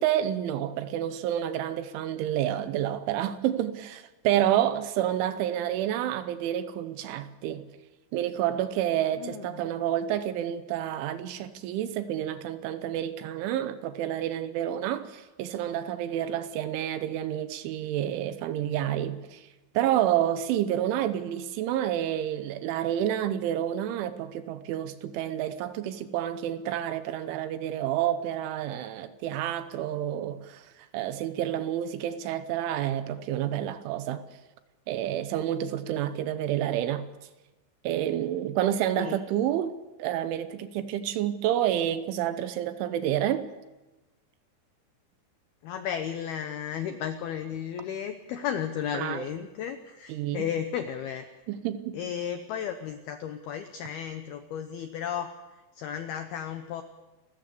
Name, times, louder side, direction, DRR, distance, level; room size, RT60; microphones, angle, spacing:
voice 1, 0.0-7.7 8.1-19.5 19.7-34.2 34.9-37.1 37.8-43.5 48.9-49.3 50.1-50.5 51.5-52.0, right 11 dB, 75° right, 3.2 m, -29 dB
voice 2, 9.1-9.6 39.0-39.2 45.6-51.3 51.9-56.8, left 9 dB, 80° left, 2.2 m, -34 dB
29.5 x 14.5 x 6.8 m
omnidirectional pair, 5.8 m